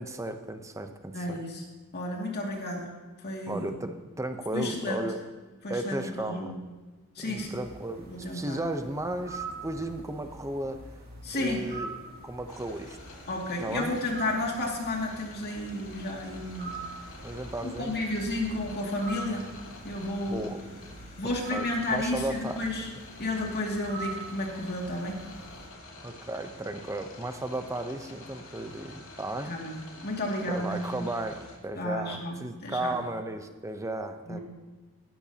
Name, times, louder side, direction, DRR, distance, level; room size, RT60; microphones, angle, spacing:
voice 1, 0.0-1.4 3.5-5.2 5.7-6.5 7.2-11.0 11.4-13.0 13.6-13.9 17.2-18.0 20.3-20.6 21.2-22.6 26.0-29.5 30.5-34.4, right 1 dB, 15° right, 7 dB, 0.8 m, -35 dB
voice 2, 1.1-1.6 1.9-2.9 3.2-3.7 4.5-5.0 5.6-6.6 7.2-7.6 8.1-8.6 11.2-11.6 13.3-16.8 17.8-19.5 19.8-20.5 21.2-22.9 23.2-25.2 29.4-29.8 30.0-31.1 31.7-33.0 34.3-34.4, left 1 dB, 50° left, -1 dB, 2.4 m, -32 dB
sound 1, 7.4-25.7, right 3 dB, 45° right, 2.7 m, -44 dB
sound 2, 12.5-31.6, left 2 dB, 70° left, 2.2 m, -48 dB
16.5 x 12.0 x 2.9 m, 1.3 s
head